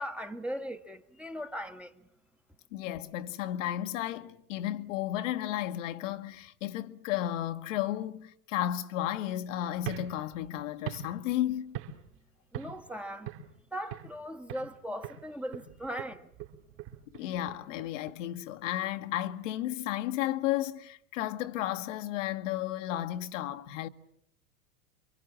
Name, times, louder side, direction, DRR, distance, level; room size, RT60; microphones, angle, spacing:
voice 1, 0.0-1.9 12.5-13.3 13.7-16.3, equal, 5° right, 1.2 m, -38 dB
voice 2, 2.7-11.8 17.1-23.9, left 13 dB, 60° left, 1.3 m, -33 dB
sound 1, 9.8-12.2 12.5-12.9 13.3-14.2 14.5-14.8 15.0-18.2, right 10 dB, 55° right, 3.5 m, -42 dB
27.5 x 24.5 x 7.4 m
figure-of-eight pair, 90°, 44 cm